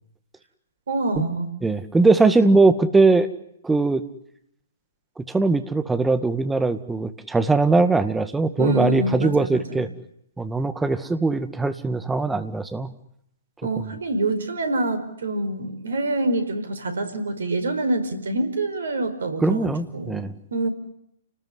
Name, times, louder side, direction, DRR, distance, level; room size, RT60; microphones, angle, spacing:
voice 1, 0.9-1.5 8.6-9.8 13.6-20.2 20.5-20.7, right 2 dB, 65° right, 10 dB, 5.0 m, -26 dB
voice 2, 1.6-3.3 3.6-4.0 5.2-9.9 10.4-12.9 19.4-20.3, right 3 dB, 5° right, 10 dB, 1.9 m, -20 dB
29.5 x 20.0 x 9.7 m, 0.75 s
figure-of-eight pair, 120°, 0 cm